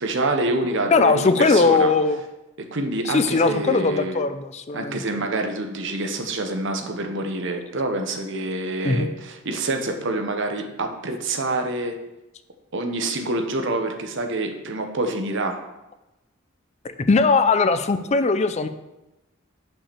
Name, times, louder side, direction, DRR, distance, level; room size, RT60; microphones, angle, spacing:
voice 1, 0.0-1.9 2.6-4.2 4.7-12.0 12.7-15.6, right 2 dB, 65° right, 5 dB, 1.0 m, -26 dB
voice 2, 0.9-2.2 3.1-5.0 8.8-9.1 16.8-18.7, left 4 dB, 35° left, 10 dB, 0.4 m, -19 dB
5.7 x 5.6 x 6.8 m, 0.98 s
head